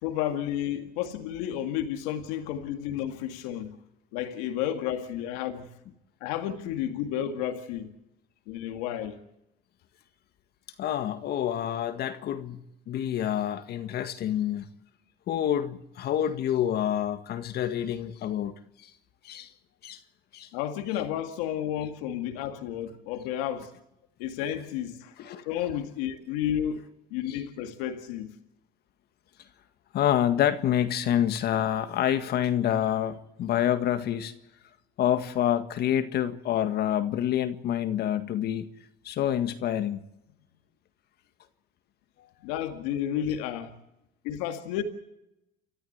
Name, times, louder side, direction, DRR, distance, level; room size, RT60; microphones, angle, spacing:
voice 1, 0.0-3.8 4.1-5.7 6.2-7.9 8.5-9.2 20.5-23.7 24.2-25.2 25.4-26.8 27.1-28.3 42.4-43.8 44.2-44.8, left 10 dB, 90° left, 2.1 m, -31 dB
voice 2, 10.8-14.7 15.3-18.5 18.8-18.9 19.2-19.5 19.8-20.0 20.3-20.5 25.2-25.5 27.3-27.4 29.9-34.3 35.0-38.7 39.0-40.0 42.2-42.3, left 10 dB, 55° left, 1.8 m, -27 dB
29.5 x 14.0 x 8.1 m
supercardioid pair, 105°, 19 cm